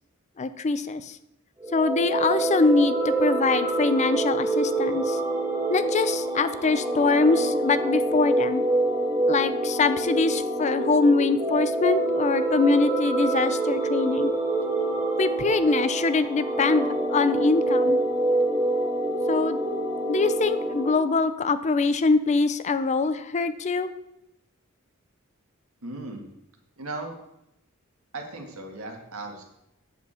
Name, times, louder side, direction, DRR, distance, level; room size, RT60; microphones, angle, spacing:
voice 1, 0.4-1.2 1.7-5.2 5.7-8.6 9.3-14.3 15.2-18.0 19.3-19.6 20.1-23.9, left 3 dB, 35° left, 12 dB, 0.4 m, -23 dB
sound 1, 1.6-20.9, right 2 dB, 15° right, 2.0 m, -26 dB
voice 2, 25.8-26.2 26.8-27.1 28.1-29.4, right 2 dB, 80° right, 2 dB, 1.8 m, -36 dB
8.4 x 7.4 x 4.3 m, 0.83 s
head